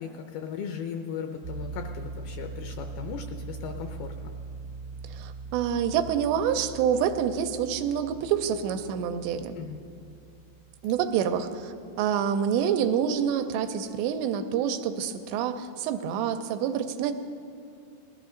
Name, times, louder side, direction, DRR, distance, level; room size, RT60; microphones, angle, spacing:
voice 1, 0.0-4.1 9.6-9.8, left 7 dB, 80° left, 5 dB, 2.2 m, -37 dB
sound 1, 1.4-12.3, right 4 dB, 65° right, 1.3 m, -42 dB
voice 2, 5.1-9.6 10.8-17.1, right 8 dB, 90° right, 7 dB, 2.8 m, -27 dB
20.0 x 14.0 x 3.8 m, 2.4 s
omnidirectional pair, 4.9 m